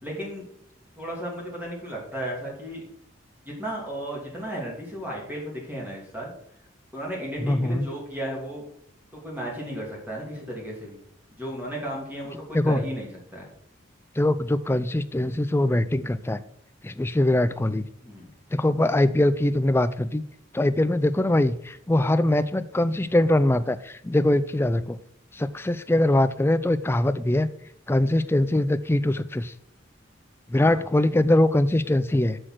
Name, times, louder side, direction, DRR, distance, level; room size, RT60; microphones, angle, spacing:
voice 1, 0.0-0.5 1.0-2.8 3.4-6.3 6.9-8.6 9.1-11.0 11.4-13.5 18.0-18.3 30.5-30.8, equal, 10° right, -3 dB, 2.7 m, -34 dB
voice 2, 7.4-7.9 12.5-12.8 14.2-16.4 16.8-17.8 18.5-20.2 20.5-25.0 25.3-27.5 27.9-29.5 30.5-32.4, left 1 dB, 10° left, 12 dB, 0.3 m, -22 dB
6.4 x 6.2 x 5.9 m, 0.71 s
head